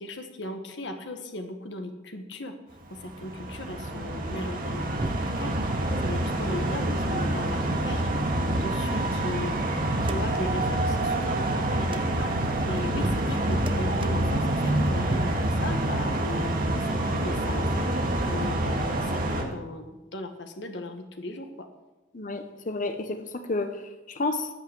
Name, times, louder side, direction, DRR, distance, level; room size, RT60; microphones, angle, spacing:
voice 1, 0.0-2.5 2.9-9.5 10.0-12.3 12.6-17.9 18.3-21.7, left 2 dB, 65° left, 5 dB, 1.5 m, -38 dB
sound 1, 2.8-19.4, right 1 dB, 50° right, 2.0 m, -27 dB
sound 2, 4.8-18.5, right 1 dB, 30° right, 0.7 m, -39 dB
voice 2, 22.1-24.5, left 2 dB, 45° left, 8 dB, 1.0 m, -31 dB
14.0 x 5.7 x 9.6 m, 1.1 s
head